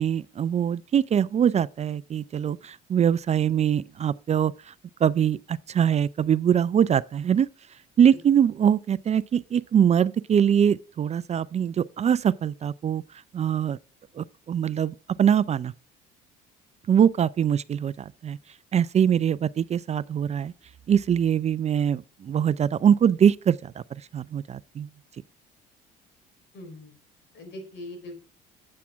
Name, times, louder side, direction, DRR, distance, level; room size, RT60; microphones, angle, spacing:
voice 1, 0.0-4.5 5.0-7.5 8.0-13.0 13.3-13.8 14.2-15.7 16.9-18.4 18.7-20.5 20.9-23.7 24.1-24.9, right 8 dB, 35° right, 0.4 m, -23 dB
voice 2, 26.5-26.9 27.3-28.2, left 1 dB, 65° left, 4.0 m, -41 dB
8.6 x 8.3 x 3.5 m
supercardioid pair, 75°, 20 cm